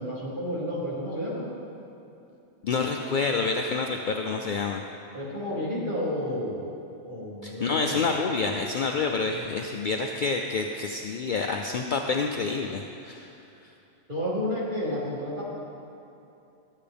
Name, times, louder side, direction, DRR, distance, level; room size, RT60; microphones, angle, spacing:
voice 1, 0.0-1.4 5.1-6.7 7.0-8.0 14.1-15.4, left 1 dB, 40° right, -7 dB, 2.4 m, -31 dB
voice 2, 2.6-4.8 7.4-13.3, left 4 dB, 80° left, 2 dB, 0.4 m, -28 dB
12.5 x 8.3 x 3.4 m, 2.8 s
omnidirectional pair, 1.4 m